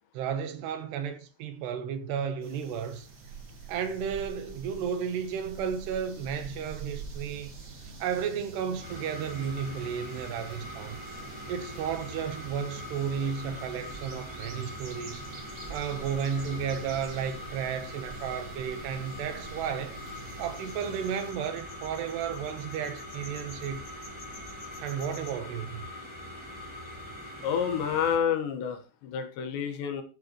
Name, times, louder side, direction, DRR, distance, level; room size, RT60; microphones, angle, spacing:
voice 1, 0.1-3.1 3.7-7.5 7.8-11.0 11.5-15.2 15.7-20.0 20.4-23.9 24.8-25.9, right 7 dB, 75° right, 3.0 m, -33 dB
sound 1, 2.4-21.3, right 4 dB, 40° right, 1.5 m, -46 dB
sound 2, 8.8-28.2, left 1 dB, ahead, 3.3 m, -43 dB
sound 3, 20.1-25.3, left 3 dB, 20° left, 5.9 m, -51 dB
voice 2, 27.4-30.0, left 7 dB, 75° left, 3.5 m, -29 dB
14.0 x 10.5 x 3.1 m
omnidirectional pair, 5.2 m